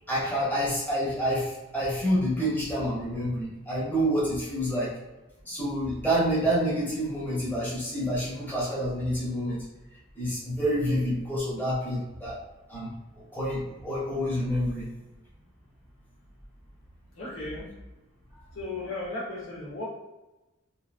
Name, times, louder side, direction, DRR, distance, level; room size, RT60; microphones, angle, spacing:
voice 1, 0.1-4.9 5.4-9.6 10.1-12.4 12.7-14.9, equal, 10° left, -9 dB, 1.0 m, -28 dB
voice 2, 17.1-17.7 18.5-19.8, left 2 dB, 70° left, -6 dB, 1.2 m, -35 dB
2.9 x 2.6 x 2.5 m, 1.0 s
head